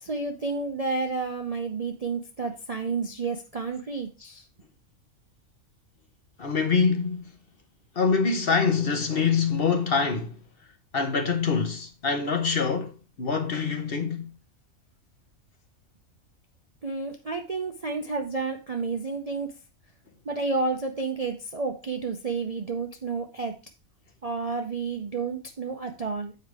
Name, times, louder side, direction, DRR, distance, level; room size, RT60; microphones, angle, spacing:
voice 1, 0.0-4.5 16.8-19.5 20.2-23.5 24.2-26.3, right 4 dB, 40° right, 0.5 m, -30 dB
voice 2, 6.4-7.3 7.9-10.4 10.9-14.3, left 5 dB, 45° left, 1.1 m, -25 dB
7.9 x 4.7 x 4.8 m
omnidirectional pair, 1.5 m